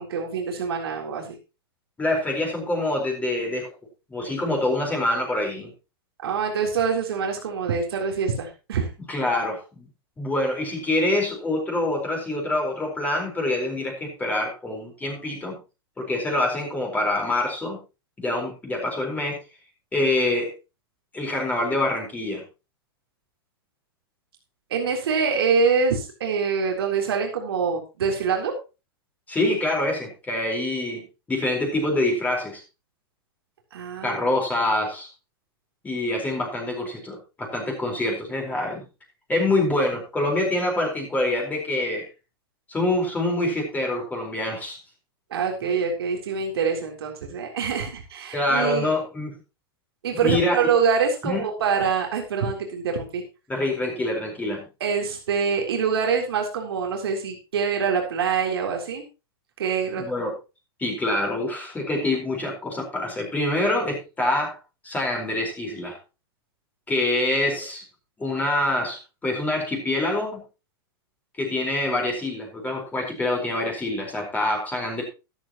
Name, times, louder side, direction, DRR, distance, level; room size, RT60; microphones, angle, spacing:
voice 1, 0.0-1.4 6.2-8.9 24.7-28.5 33.7-34.2 45.3-48.9 50.0-53.2 54.8-59.0 59.6-60.0, right 6 dB, 85° right, 1 dB, 3.6 m, -25 dB
voice 2, 2.0-3.7 4.1-5.7 9.1-9.8 10.2-15.6 16.0-17.8 18.2-19.4 19.9-20.5 21.1-22.4 29.3-31.0 31.3-32.6 34.0-35.1 35.8-38.8 39.3-42.1 42.7-44.8 48.3-49.4 50.1-50.7 51.2-51.4 53.5-54.6 60.0-60.3 60.8-64.6 64.8-66.0 66.9-67.8 68.2-70.4 71.4-75.0, left 1 dB, 10° left, 0 dB, 4.6 m, -25 dB
13.0 x 12.0 x 3.0 m, 0.30 s
hypercardioid pair, 130°, 13 cm